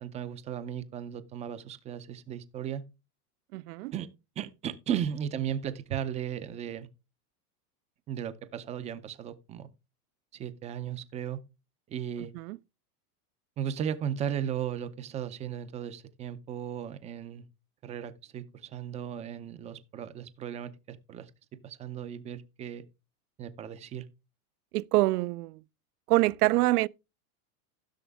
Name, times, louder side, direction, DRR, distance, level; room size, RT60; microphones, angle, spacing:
voice 1, 0.0-2.9 3.9-4.1 4.4-6.9 8.1-9.7 10.3-11.4 11.9-12.3 13.6-17.4 17.8-21.3 21.6-22.8 23.4-24.1, right 9 dB, 15° right, 0.4 m, -36 dB
voice 2, 3.5-3.9 12.3-12.6 24.7-25.6 26.1-26.9, right 18 dB, 80° right, 0.6 m, -25 dB
15.0 x 6.2 x 3.4 m
supercardioid pair, 150°, 46 cm